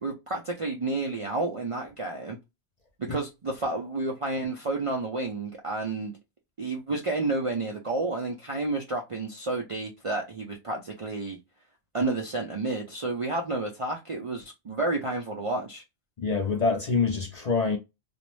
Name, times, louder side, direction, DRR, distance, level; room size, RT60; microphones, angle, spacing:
voice 1, 0.0-2.4 3.0-6.1 6.6-11.4 11.9-15.8, right 2 dB, 50° right, 0.4 m, -30 dB
voice 2, 16.2-17.8, left 4 dB, 50° left, 0.5 m, -25 dB
2.5 x 2.0 x 3.0 m
omnidirectional pair, 1.1 m